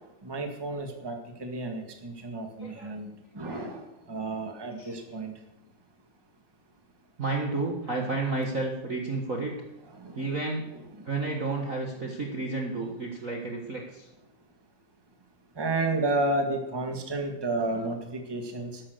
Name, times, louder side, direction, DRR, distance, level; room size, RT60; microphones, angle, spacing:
voice 1, 0.0-5.3 9.9-10.3 11.0-11.1 15.5-18.8, right 2 dB, 15° right, 4 dB, 0.7 m, -32 dB
voice 2, 2.6-3.0 3.4-3.7 4.8-4.9 7.2-9.5 10.1-10.6 11.0-14.1, right 3 dB, 75° right, 0 dB, 0.7 m, -31 dB
13.0 x 11.0 x 6.6 m, 0.90 s
omnidirectional pair, 3.9 m